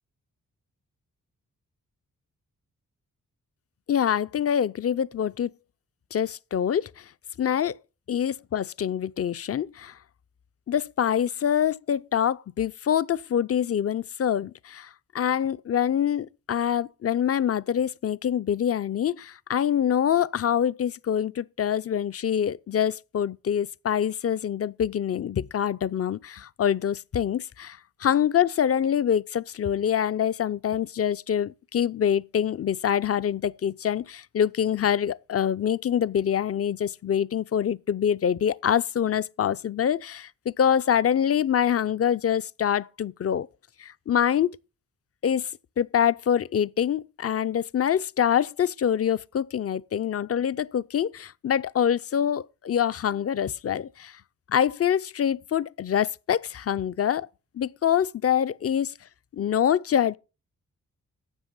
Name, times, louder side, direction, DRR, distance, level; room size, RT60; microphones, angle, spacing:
voice 1, 3.9-5.5 6.1-7.0 7.4-7.8 8.1-9.9 10.7-14.9 15.1-40.3 40.6-43.5 43.8-44.6 45.2-45.5 45.8-54.2 54.5-57.3 57.5-59.0 59.3-60.2, left 9 dB, 45° left, 0.5 m, -25 dB
12.5 x 7.9 x 5.4 m
wide cardioid pair, 85°, 34 cm